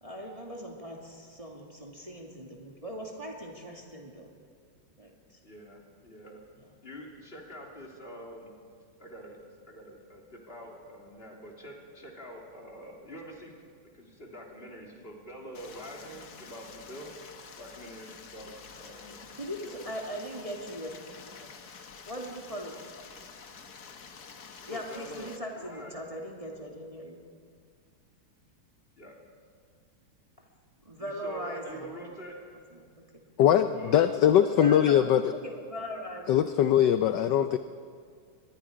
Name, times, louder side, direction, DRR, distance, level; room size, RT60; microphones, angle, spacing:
voice 1, 0.0-4.3 5.0-5.4 6.6-6.7 19.1-20.9 21.4-21.5 22.1-22.8 24.7-27.2 30.8-31.9 32.7-33.0 34.4-36.3 37.4-37.6, equal, 15° right, -1 dB, 2.2 m, -40 dB
voice 2, 5.4-6.4 6.8-8.5 9.0-17.1 17.6-19.2 19.6-19.8 24.6-26.0 29.0-29.2 31.0-32.4 33.7-34.0 34.3-34.4, equal, 25° left, -1 dB, 3.3 m, -46 dB
Stream, 15.5-25.4, left 5 dB, 50° left, 1.6 m, -48 dB
voice 3, 33.4-35.3 36.3-37.6, left 10 dB, 70° left, 10 dB, 1.1 m, -22 dB
24.5 x 21.0 x 5.1 m, 2.1 s
omnidirectional pair, 2.3 m